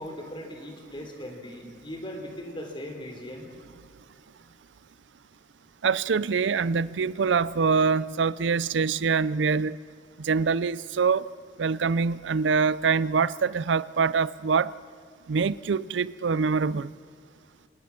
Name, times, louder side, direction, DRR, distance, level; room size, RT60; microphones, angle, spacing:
voice 1, 0.0-3.5, left 1 dB, 25° left, 3.2 m, -39 dB
voice 2, 5.8-9.8 10.2-11.2 11.6-14.7 15.3-16.9, right 5 dB, 75° right, 0.5 m, -24 dB
25.5 x 19.5 x 5.9 m
head